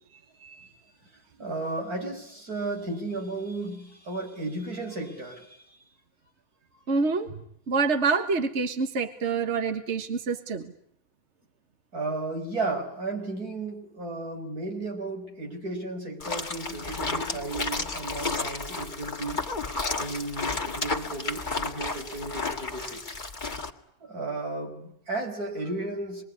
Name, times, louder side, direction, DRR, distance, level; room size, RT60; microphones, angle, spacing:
voice 1, 1.4-5.5 11.9-19.4 20.0-23.0 24.0-26.2, right 2 dB, 85° right, 2 dB, 5.9 m, -34 dB
voice 2, 6.9-7.3 7.7-10.7, right 4 dB, 50° right, 8 dB, 1.8 m, -27 dB
sound 1, 16.2-23.7, left 3 dB, 30° left, 1.9 m, -32 dB
26.5 x 22.0 x 9.8 m, 0.68 s
omnidirectional pair, 1.5 m